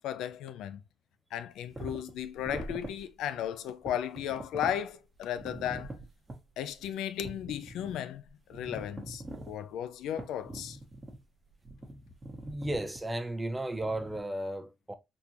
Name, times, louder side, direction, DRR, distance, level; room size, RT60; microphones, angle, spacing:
voice 1, 0.0-0.8 1.3-5.9 6.6-8.2 8.5-10.8, left 10 dB, 85° left, 0.3 m, -35 dB
sound 1, 1.7-3.0 3.3-3.4 3.7-4.8 5.3-6.4 6.7-6.8 7.2-8.0 8.3-9.5 10.2-11.2 11.6-13.1 13.7-14.2, right 1 dB, 30° right, 1.0 m, -43 dB
voice 2, 12.4-14.9, right 1 dB, 10° right, 0.5 m, -34 dB
3.7 x 2.4 x 2.8 m
cardioid pair, 90°, 0 cm